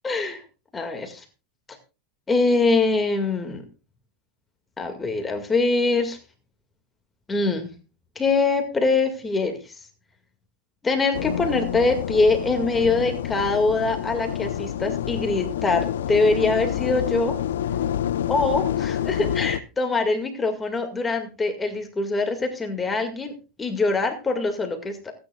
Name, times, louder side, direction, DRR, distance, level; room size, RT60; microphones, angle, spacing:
voice 1, 0.0-0.4 0.7-1.2 2.3-3.6 4.8-6.2 7.3-7.7 8.2-9.6 10.8-17.3 18.3-23.3 23.6-25.1, left 3 dB, 15° left, 5 dB, 2.0 m, -23 dB
sound 1, 11.1-19.6, left 10 dB, 80° left, 0.6 m, -28 dB
28.0 x 9.6 x 2.4 m, 0.31 s
hypercardioid pair, 115°, 0 cm